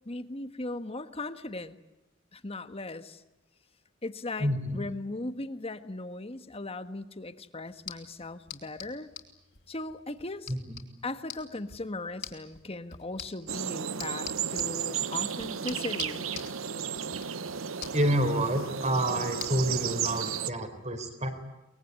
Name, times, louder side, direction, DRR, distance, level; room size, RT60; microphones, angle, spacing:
voice 1, 0.0-1.8 2.3-3.2 4.0-9.1 9.7-10.5 11.0-16.3, left 2 dB, 30° left, 10 dB, 1.5 m, -38 dB
voice 2, 4.4-4.9 10.5-10.8 17.9-21.3, right 1 dB, 35° right, 9 dB, 4.2 m, -28 dB
sound 1, 7.7-20.2, left 8 dB, 60° left, 4.1 m, -47 dB
sound 2, 13.5-20.5, right 8 dB, 90° right, 0.9 m, -33 dB
24.0 x 22.0 x 9.5 m, 1.0 s
head